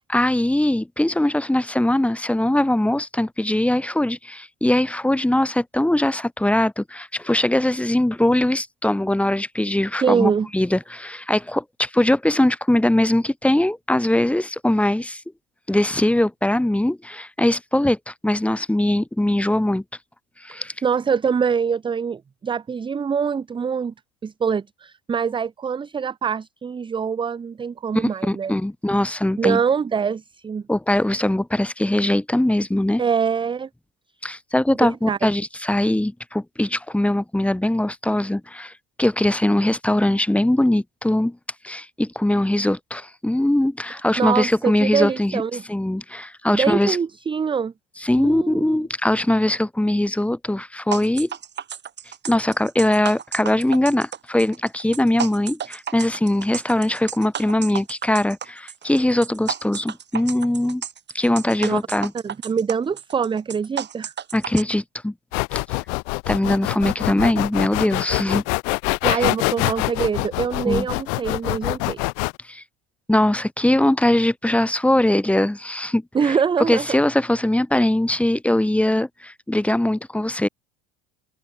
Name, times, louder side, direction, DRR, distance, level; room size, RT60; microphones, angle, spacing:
voice 1, 0.1-15.2 15.7-19.8 20.4-20.7 28.0-29.6 30.7-33.0 34.2-38.7 39.0-41.4 41.6-45.4 45.7-47.0 48.0-51.3 52.3-60.8 61.2-62.1 64.3-65.1 66.3-68.4 69.1-69.2 70.6-70.9 72.5-72.6 73.1-76.4 76.7-80.5, left 1 dB, 5° left, 1.6 m, -21 dB
voice 2, 10.0-10.5 20.8-23.9 24.2-28.6 29.4-30.6 33.0-33.7 34.8-35.3 44.2-45.6 46.5-47.7 48.2-48.8 61.6-61.8 62.2-64.1 69.0-72.1 76.1-76.9, right 6 dB, 15° right, 0.6 m, -24 dB
sound 1, 50.9-64.6, right 8 dB, 30° right, 6.9 m, -32 dB
sound 2, 65.3-72.3, left 40 dB or more, 60° left, 0.6 m, -24 dB
supercardioid pair, 100°, 33 cm